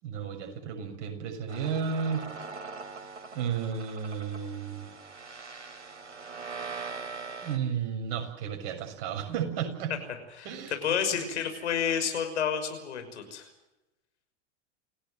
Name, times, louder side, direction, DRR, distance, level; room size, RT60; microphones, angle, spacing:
voice 1, 0.0-2.3 3.3-4.9 7.4-9.9 10.4-10.8, right 7 dB, 55° right, 4 dB, 7.1 m, -33 dB
sound 1, 1.5-7.6, right 4 dB, 90° right, 3.4 m, -42 dB
voice 2, 10.8-13.5, left 7 dB, 75° left, 7 dB, 6.0 m, -30 dB
29.0 x 17.0 x 7.9 m, 0.95 s
hypercardioid pair, 90°, 35 cm